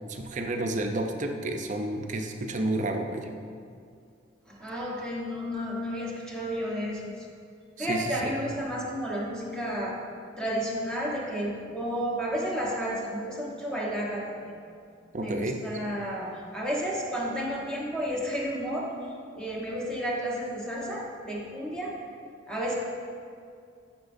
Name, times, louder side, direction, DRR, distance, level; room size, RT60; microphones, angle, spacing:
voice 1, 0.1-3.3 7.8-8.3 15.1-15.6, right 1 dB, 40° right, 4 dB, 0.6 m, -30 dB
voice 2, 4.5-7.3 7.8-10.0 10.4-14.6 15.2-18.9 19.3-22.0 22.5-22.7, equal, 5° left, -4 dB, 1.1 m, -32 dB
12.0 x 6.0 x 2.6 m, 2.3 s
head